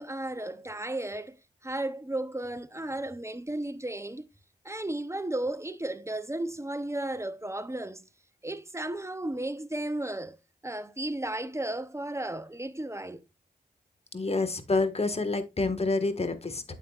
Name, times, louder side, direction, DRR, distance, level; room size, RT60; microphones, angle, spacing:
voice 1, 0.0-1.4 1.6-4.3 4.6-8.1 8.4-10.4 10.6-13.2, right 1 dB, 15° right, 0.8 m, -34 dB
voice 2, 14.1-16.8, left 3 dB, 35° left, 1.7 m, -28 dB
9.2 x 7.2 x 2.5 m
cardioid pair, 50°, 18 cm